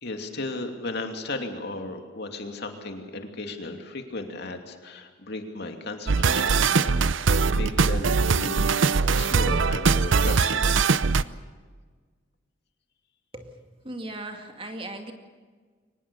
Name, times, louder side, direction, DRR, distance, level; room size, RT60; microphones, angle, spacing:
voice 1, 0.0-8.7 9.1-10.8, left 2 dB, 60° left, 4 dB, 2.7 m, -35 dB
sound 1, 6.1-11.2, right 4 dB, 80° right, 0.7 m, -22 dB
voice 2, 13.8-15.1, right 1 dB, 30° right, 5 dB, 2.3 m, -37 dB
23.5 x 20.0 x 7.0 m, 1.5 s
head